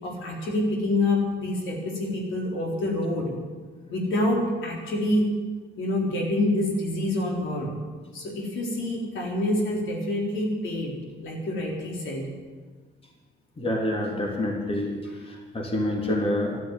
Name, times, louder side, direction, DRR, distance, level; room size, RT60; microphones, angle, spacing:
voice 1, 0.0-3.3 3.9-5.3 5.8-7.7 8.1-11.0 11.2-12.3 15.0-15.1, left 1 dB, 75° left, -1 dB, 4.0 m, -27 dB
voice 2, 13.6-14.9 15.5-16.6, left 1 dB, 30° left, 0 dB, 3.1 m, -26 dB
12.5 x 12.0 x 9.0 m, 1.5 s
cardioid pair, 90°, 20 cm